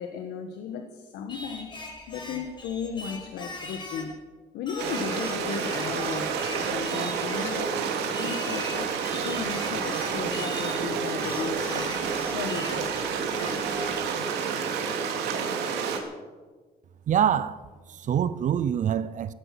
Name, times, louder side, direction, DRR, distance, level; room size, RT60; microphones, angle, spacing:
voice 1, 0.0-1.7 2.1-4.2 4.5-7.7 8.2-13.0, left 6 dB, 80° left, 1.5 m, -35 dB
Singing, 1.3-4.2 4.7-7.7 8.1-10.8 11.2-14.1, left 2 dB, 25° left, 5.5 m, -40 dB
Stream, 4.8-16.0, right 6 dB, 85° right, 2.7 m, -29 dB
voice 2, 17.1-17.6 17.9-19.3, right 9 dB, 50° right, 0.6 m, -25 dB
16.5 x 13.5 x 6.0 m
cardioid pair, 110°, 17 cm